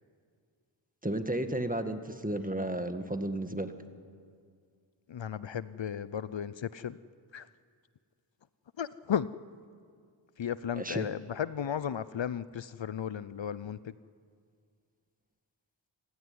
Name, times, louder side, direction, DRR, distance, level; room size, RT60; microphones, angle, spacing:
voice 1, 1.0-3.7 10.7-11.0, right 1 dB, 15° right, 8 dB, 1.7 m, -33 dB
voice 2, 5.1-7.0 7.3-7.5 8.8-9.3 10.4-13.9, left 8 dB, 65° left, 16 dB, 0.6 m, -34 dB
27.0 x 15.5 x 9.6 m, 2.2 s
wide cardioid pair, 45°, 49 cm